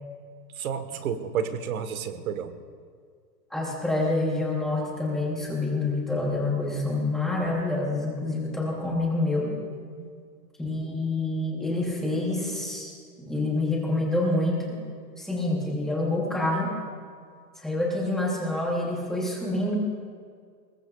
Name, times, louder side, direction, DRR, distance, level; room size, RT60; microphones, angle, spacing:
voice 1, 0.6-2.5 10.0-10.1, right 7 dB, 55° right, 10 dB, 1.3 m, -31 dB
voice 2, 3.5-9.5 10.6-12.9 13.2-14.8 15.2-16.7 17.6-19.8, left 2 dB, ahead, -4 dB, 0.7 m, -27 dB
23.0 x 20.0 x 2.3 m, 2.1 s
hypercardioid pair, 170°, 50 cm